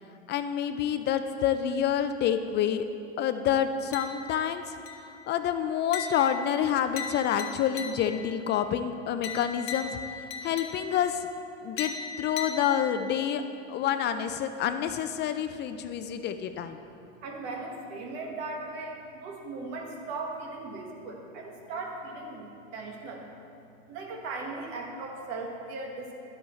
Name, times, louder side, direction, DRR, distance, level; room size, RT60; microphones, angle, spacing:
voice 1, 0.3-2.8 3.2-4.8 5.3-9.9 10.4-11.3 11.6-13.4 13.7-16.8, left 9 dB, 35° left, 9 dB, 0.4 m, -28 dB
sound 1, 3.9-4.5 4.9-5.3 5.9-8.3 9.2-11.1 11.8-13.2, left 6 dB, 80° left, 1.0 m, -38 dB
voice 2, 17.2-23.2 23.9-26.1, right 3 dB, 70° right, 1 dB, 1.6 m, -38 dB
11.0 x 8.0 x 3.2 m, 2.7 s
supercardioid pair, 110°, 31 cm